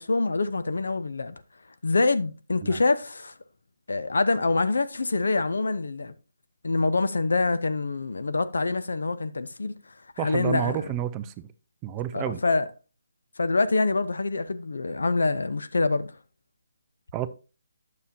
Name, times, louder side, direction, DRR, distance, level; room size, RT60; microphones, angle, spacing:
voice 1, 0.0-1.3 1.8-3.3 3.9-6.1 6.6-9.7 10.2-10.9 12.1-12.7 13.4-16.1, left 3 dB, 85° left, 0.7 m, -25 dB
voice 2, 10.2-11.5 11.8-12.4 17.1-17.3, right 12 dB, 20° right, 0.4 m, -30 dB
9.3 x 6.9 x 2.7 m
hypercardioid pair, 160°, 0 cm